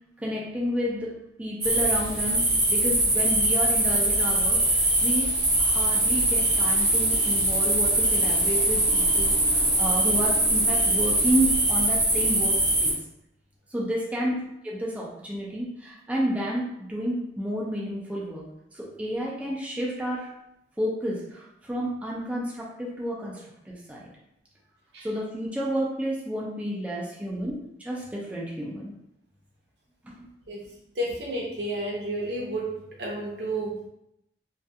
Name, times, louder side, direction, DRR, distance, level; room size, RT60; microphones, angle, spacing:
voice 1, 0.2-5.3 5.6-13.0 13.7-18.5 18.7-20.3 20.8-24.0 25.0-28.9 30.0-30.3, equal, 10° right, -4 dB, 0.4 m, -31 dB
sound 1, 1.6-12.9, right 1 dB, 30° right, 0.8 m, -22 dB
voice 2, 31.0-32.7 33.0-33.9, right 1 dB, 80° right, -3 dB, 0.7 m, -31 dB
2.3 x 2.3 x 2.7 m, 0.80 s
head